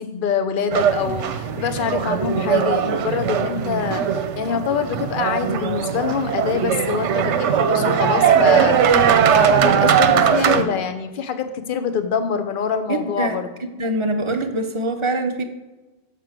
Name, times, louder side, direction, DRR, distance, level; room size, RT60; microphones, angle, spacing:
voice 1, 0.0-13.5, left 6 dB, 50° left, 9 dB, 0.8 m, -25 dB
sound 1, 0.7-10.6, right 8 dB, 75° right, 0.9 m, -19 dB
voice 2, 12.9-13.4 13.8-15.4, right 2 dB, 35° right, 5 dB, 0.6 m, -23 dB
6.7 x 6.0 x 5.0 m, 1.1 s
omnidirectional pair, 1.2 m